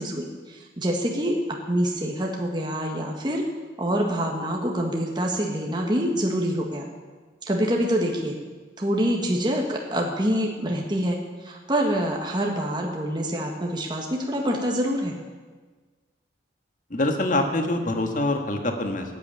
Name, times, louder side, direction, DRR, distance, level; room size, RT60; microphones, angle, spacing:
voice 1, 0.0-3.4 3.8-6.9 7.4-8.4 8.8-15.2, equal, 20° right, 0 dB, 1.6 m, -26 dB
voice 2, 16.9-19.0, left 1 dB, 40° left, 4 dB, 1.7 m, -25 dB
14.5 x 9.2 x 9.0 m, 1.4 s
head